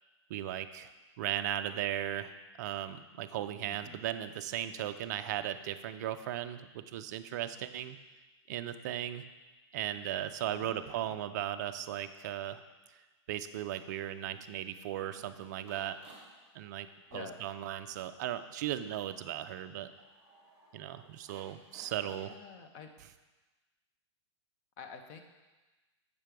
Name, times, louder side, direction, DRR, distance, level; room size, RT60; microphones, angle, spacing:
voice 1, 0.3-0.9 1.2-8.0 8.5-9.2 9.7-12.6 12.9-13.0 13.3-16.0 16.5-19.9 20.7-22.4, right 11 dB, 35° right, 10 dB, 0.4 m, -37 dB
voice 2, 3.7-4.0 10.5-11.1 17.1-17.4 22.1-22.9 24.8-25.2, left 5 dB, 30° left, 5 dB, 0.6 m, -48 dB
sound 1, 13.5-22.4, right 2 dB, 10° right, 2.5 m, -61 dB
7.5 x 5.1 x 4.5 m, 1.2 s
supercardioid pair, 165°, 15 cm